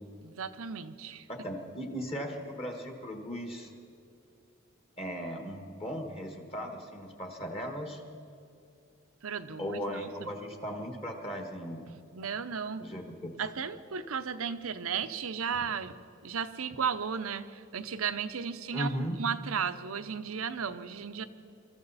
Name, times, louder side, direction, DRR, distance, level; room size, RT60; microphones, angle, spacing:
voice 1, 0.2-1.3 9.2-10.3 12.1-12.8 13.4-16.0 16.2-21.2, right 6 dB, 85° right, 10 dB, 0.8 m, -35 dB
voice 2, 1.3-3.7 5.0-8.0 9.6-11.9 12.8-13.0 18.7-19.2, equal, 30° left, 3 dB, 1.5 m, -37 dB
24.5 x 14.0 x 4.1 m, 2.5 s
head